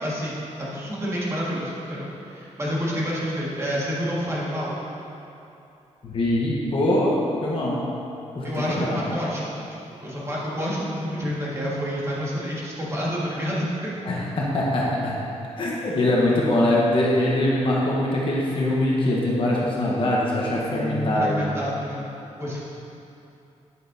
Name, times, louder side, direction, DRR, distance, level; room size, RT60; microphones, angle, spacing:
voice 1, 0.0-4.8 8.4-13.9 15.7-15.9 20.7-22.0 22.4-22.6, equal, 20° right, -6 dB, 1.8 m, -29 dB
voice 2, 6.0-7.1 7.4-7.8 8.3-8.5 8.8-9.1 14.0-15.1 15.6-21.4, left 1 dB, 45° left, -5 dB, 1.1 m, -22 dB
10.0 x 7.9 x 2.7 m, 2.8 s
wide cardioid pair, 150°, 12 cm